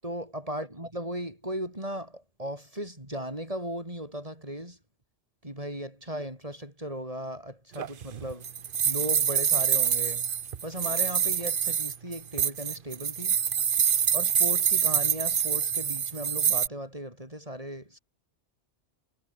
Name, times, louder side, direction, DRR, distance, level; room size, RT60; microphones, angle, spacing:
voice 1, 0.0-4.8 5.4-8.5 8.8-10.3 10.6-13.4 14.1-18.0, equal, 30° right, 7.0 m, -37 dB
sound 1, 7.8-16.7, right 8 dB, 55° right, 0.9 m, -26 dB
omnidirectional pair, 1.2 m